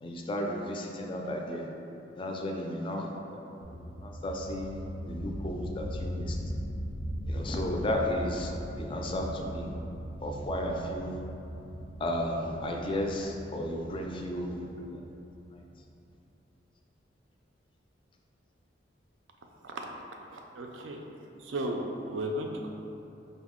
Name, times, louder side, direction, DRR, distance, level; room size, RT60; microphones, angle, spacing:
voice 1, 0.0-1.7 2.2-6.4 7.2-9.7 10.2-11.2 12.0-15.1 15.5-15.6, left 1 dB, 25° left, 1 dB, 0.3 m, -34 dB
sound 1, 3.6-16.0, equal, 90° left, 0.6 m, -39 dB
voice 2, 20.3-21.0 21.4-22.7, right 1 dB, 85° right, 2 dB, 0.4 m, -35 dB
5.2 x 2.1 x 3.6 m, 2.9 s
head